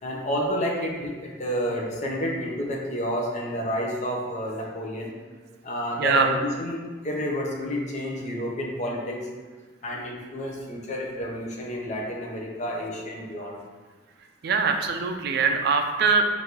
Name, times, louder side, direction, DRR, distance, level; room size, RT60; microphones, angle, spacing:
voice 1, 0.0-5.1 5.6-9.2 9.8-13.6, equal, 40° left, -1 dB, 0.7 m, -30 dB
voice 2, 6.0-6.3 14.4-16.2, right 5 dB, 55° right, 5 dB, 0.3 m, -22 dB
5.0 x 2.6 x 2.9 m, 1.4 s
head